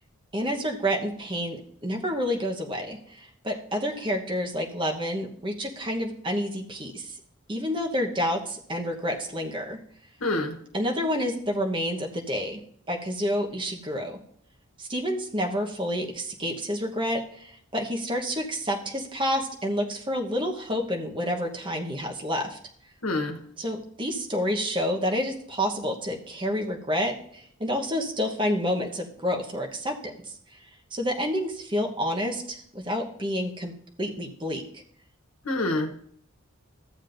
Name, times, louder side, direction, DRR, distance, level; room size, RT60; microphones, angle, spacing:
voice 1, 0.3-7.2 7.5-9.8 10.7-12.6 12.9-14.2 14.8-22.6 23.6-30.1 30.9-33.7 34.0-34.8, equal, 25° right, 1 dB, 1.1 m, -29 dB
voice 2, 10.2-10.6 23.0-23.4 35.4-36.0, left 2 dB, 85° left, 4 dB, 1.1 m, -27 dB
14.0 x 7.4 x 2.6 m, 0.65 s
head